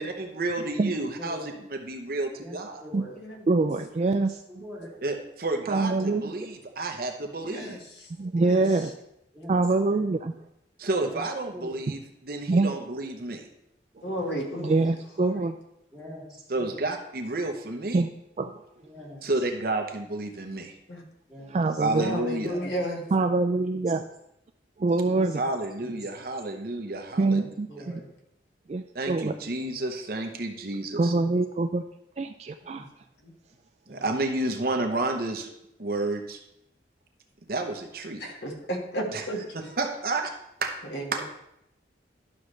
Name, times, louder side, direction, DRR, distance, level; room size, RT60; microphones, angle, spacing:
voice 1, 0.0-2.8 5.0-7.8 10.8-13.5 16.5-18.1 19.2-20.7 21.8-22.6 25.3-27.4 27.8-27.9 28.9-31.1 33.9-35.5 35.8-36.4 37.5-38.2 39.1-39.2 39.5-40.3 40.6-40.7 41.1-41.2, right 2 dB, 55° right, 4 dB, 0.8 m, -30 dB
voice 2, 0.7-1.4 2.3-3.1 3.9-4.2 4.5-4.9 5.9-6.2 8.6-8.8 9.3-9.5 9.9-10.0 11.0-11.2 11.5-11.8 15.9-16.8 18.8-19.2 21.3-22.0 22.4-22.7 23.1-23.2 23.7-23.8 25.0-25.4 25.8-26.2 27.1-28.1 29.2-29.7 31.0-31.3 33.9-34.1, equal, 5° right, -8 dB, 3.3 m, -44 dB
voice 3, 3.5-4.4 5.7-6.3 8.2-8.9 9.5-10.3 12.5-12.7 14.6-15.6 17.9-18.1 18.4-18.6 21.5-22.0 23.1-24.0 24.8-25.4 27.2-28.0 28.7-29.3 31.0-31.8 32.2-32.9, right 3 dB, 35° right, 7 dB, 0.3 m, -24 dB
voice 4, 7.5-8.1 8.4-8.6 14.0-14.9 15.2-15.3 20.9-21.0 21.9-23.0 32.7-32.9 33.2-33.3 38.2-39.4 40.9-41.2, equal, 70° left, 0 dB, 1.6 m, -33 dB
11.5 x 6.2 x 3.2 m, 0.82 s
head